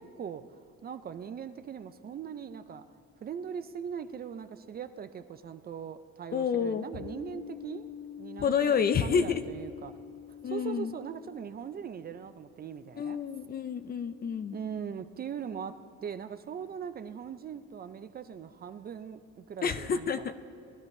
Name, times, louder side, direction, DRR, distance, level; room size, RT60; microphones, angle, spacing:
voice 1, 0.0-2.9 3.2-8.7 9.0-10.0 10.4-13.2 14.5-20.3, right 7 dB, 35° right, 11 dB, 0.4 m, -40 dB
voice 2, 6.3-6.9 8.4-9.4 10.4-11.0 13.0-14.6 19.6-20.3, left 7 dB, 35° left, 11 dB, 0.4 m, -29 dB
sound 1, 7.0-14.8, left 10 dB, 75° left, 0.6 m, -48 dB
21.0 x 13.0 x 2.6 m, 2.6 s
cardioid pair, 165°, 29 cm